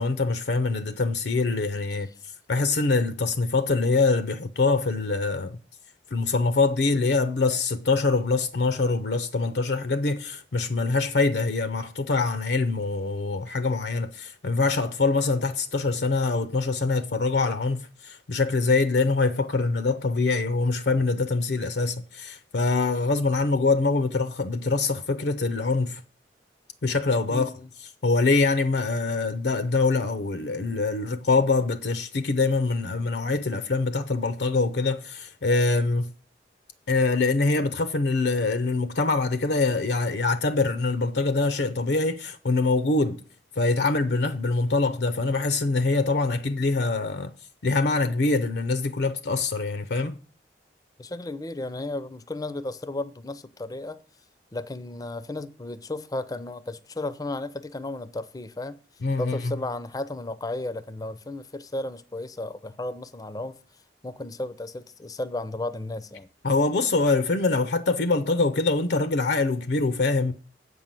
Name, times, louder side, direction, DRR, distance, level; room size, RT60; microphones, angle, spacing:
voice 1, 0.0-2.1 2.5-5.6 6.1-26.0 26.8-27.5 28.0-36.1 36.9-43.2 43.6-47.3 47.6-50.2 59.0-59.5 66.4-70.3, left 3 dB, 70° left, 0.6 m, -24 dB
voice 2, 27.3-27.7 51.0-54.0 54.5-58.8 59.2-63.6 64.0-66.3, left 2 dB, 20° left, 0.5 m, -34 dB
8.2 x 5.5 x 7.4 m
head